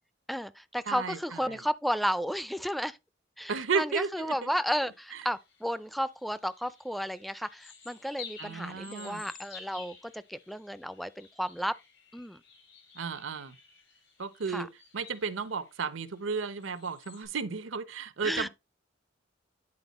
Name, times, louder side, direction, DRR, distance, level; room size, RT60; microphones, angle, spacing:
voice 1, 0.3-3.0 3.4-11.7 12.1-12.4 14.5-14.7 18.2-18.5, equal, ahead, 0.4 m, -33 dB
voice 2, 0.9-1.6 3.5-4.5 8.4-9.3 13.0-13.6 14.2-14.7 14.9-18.5, right 5 dB, 80° right, 0.8 m, -33 dB
sound 1, 4.5-17.3, left 5 dB, 75° left, 3.6 m, -52 dB
9.8 x 4.4 x 4.1 m
head